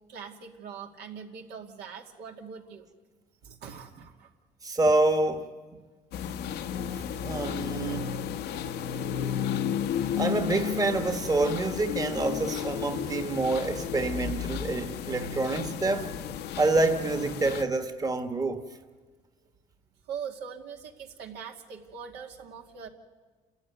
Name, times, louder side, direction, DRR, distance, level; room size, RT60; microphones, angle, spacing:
voice 1, 0.1-2.9 3.4-4.3 8.1-8.2 8.5-8.6 20.1-22.9, right 7 dB, 80° right, 2.4 m, -42 dB
voice 2, 4.6-5.8 6.9-8.1 10.2-16.1 16.6-18.6, right 2 dB, 20° right, 1.4 m, -27 dB
sound 1, 6.1-17.6, left 8 dB, 75° left, 1.1 m, -33 dB
28.5 x 14.0 x 9.6 m
cardioid pair, 110°, 17 cm